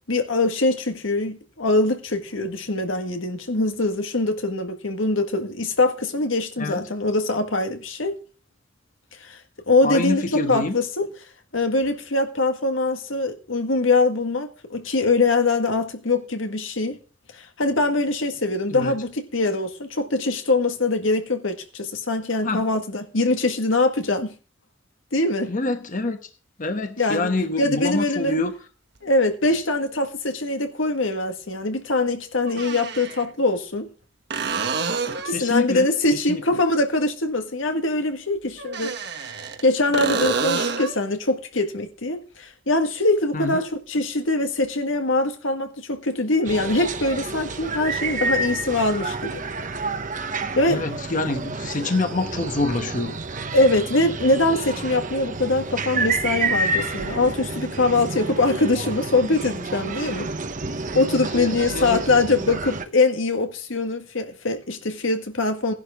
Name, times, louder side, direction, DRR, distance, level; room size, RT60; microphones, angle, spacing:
voice 1, 0.1-8.2 9.2-9.4 9.7-11.1 11.5-17.0 17.3-24.3 25.1-25.5 27.0-27.3 27.6-28.4 29.0-33.9 35.2-39.3 39.6-49.4 50.6-50.8 53.5-60.3 60.9-65.7, left 2 dB, 90° left, 1.7 m, -23 dB
voice 2, 9.8-10.8 18.7-18.9 22.4-22.6 25.5-26.2 26.6-28.5 29.5-29.6 35.1-36.4 43.3-43.6 50.7-53.2 61.3-62.0, left 2 dB, 45° left, 1.1 m, -26 dB
sound 1, 29.0-29.1 31.1-31.2 32.5-33.2 34.3-35.4 38.6-39.6 39.9-41.0 44.6-44.7, right 4 dB, 60° right, 1.3 m, -27 dB
sound 2, 46.5-62.9, right 3 dB, 40° right, 1.0 m, -29 dB
16.0 x 11.0 x 3.6 m
head